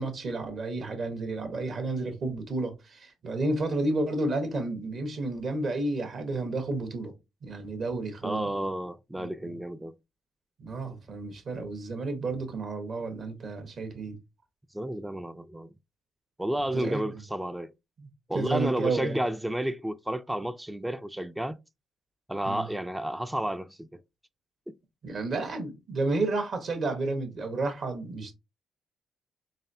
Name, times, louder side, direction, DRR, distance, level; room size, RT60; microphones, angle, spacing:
voice 1, 0.0-7.1 7.4-8.5 9.2-9.5 10.6-14.2 16.7-17.0 18.0-18.1 18.3-19.2 22.4-22.7 25.0-28.3, right 2 dB, 55° right, 1.2 m, -31 dB
voice 2, 8.2-9.9 14.7-15.7 16.4-17.7 18.3-21.6 22.3-24.0 24.7-24.8, right 1 dB, 10° right, 0.3 m, -31 dB
4.0 x 3.3 x 2.7 m
cardioid pair, 90°, 0 cm